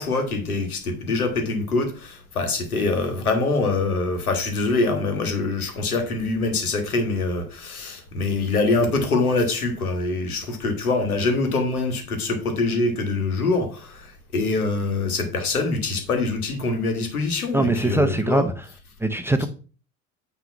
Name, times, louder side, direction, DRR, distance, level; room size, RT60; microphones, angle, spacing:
voice 1, 0.0-18.5 19.4-19.5, left 3 dB, 80° left, 1.6 m, -24 dB
voice 2, 17.5-18.5 19.0-19.5, right 2 dB, 5° right, 0.7 m, -21 dB
9.2 x 3.3 x 5.9 m
figure-of-eight pair, 65°, 43 cm